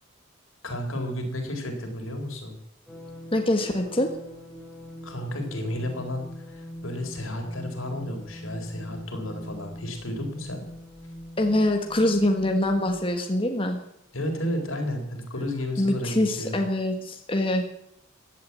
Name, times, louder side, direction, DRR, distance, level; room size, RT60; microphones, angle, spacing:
voice 1, 0.6-2.6 5.0-10.6 14.1-16.6, left 1 dB, 80° left, 4 dB, 4.2 m, -32 dB
sound 1, 2.9-13.1, equal, 5° left, 4.9 m, -42 dB
voice 2, 3.3-4.1 11.4-13.8 15.8-17.6, left 1 dB, 25° left, 4 dB, 1.4 m, -24 dB
16.0 x 10.5 x 8.4 m, 0.76 s
head